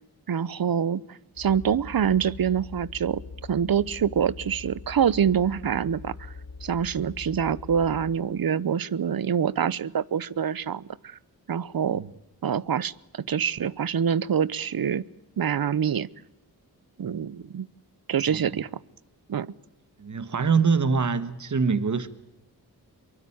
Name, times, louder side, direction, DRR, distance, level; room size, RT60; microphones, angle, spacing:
voice 1, 0.3-3.2 3.5-6.1 6.6-11.2 11.5-12.0 12.4-15.0 15.4-16.1 17.0-17.7 18.1-18.8 19.3-19.5, right 8 dB, 70° right, 21 dB, 0.9 m, -25 dB
sound 1, 1.3-8.2, left 4 dB, 85° left, 2.2 m, -42 dB
voice 2, 18.3-18.6 20.0-22.1, right 5 dB, 50° right, 13 dB, 1.5 m, -24 dB
24.0 x 23.5 x 8.7 m, 0.84 s
wide cardioid pair, 70°, 37 cm